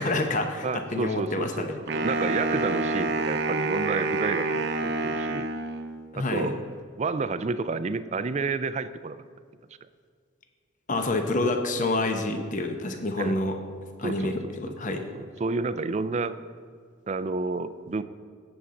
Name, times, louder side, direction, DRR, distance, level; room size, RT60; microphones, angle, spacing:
voice 1, 0.0-1.8 6.1-6.5 10.9-13.6 14.0-15.1, left 2 dB, 40° left, 5 dB, 0.8 m, -28 dB
voice 2, 0.6-5.5 6.2-6.6 7.0-9.2 13.2-13.4 14.0-16.4 17.1-18.0, right 3 dB, 35° right, 13 dB, 0.4 m, -30 dB
Wind instrument woodwind instrument, 1.9-6.1, right 3 dB, 55° right, 0.8 m, -28 dB
17.0 x 7.1 x 3.8 m, 2.1 s
head